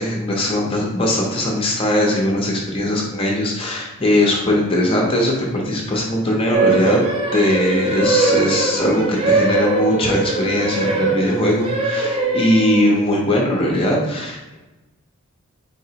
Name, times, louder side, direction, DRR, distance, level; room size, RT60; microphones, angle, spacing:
voice 1, 0.0-7.1 7.3-14.5, left 1 dB, 25° left, -2 dB, 0.6 m, -20 dB
sound 1, 6.5-13.1, right 3 dB, 25° right, 0.5 m, -21 dB
4.1 x 3.8 x 2.8 m, 1.1 s
head